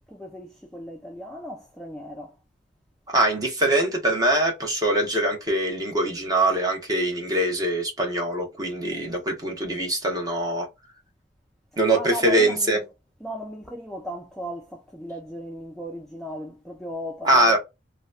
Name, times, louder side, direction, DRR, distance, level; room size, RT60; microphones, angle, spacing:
voice 1, 0.1-2.4 8.9-9.1 11.9-12.8 13.2-17.6, equal, ahead, 0.4 m, -36 dB
voice 2, 3.1-10.7 11.8-12.8 17.2-17.6, right 1 dB, 20° right, 1.0 m, -23 dB
2.9 x 2.1 x 2.3 m
head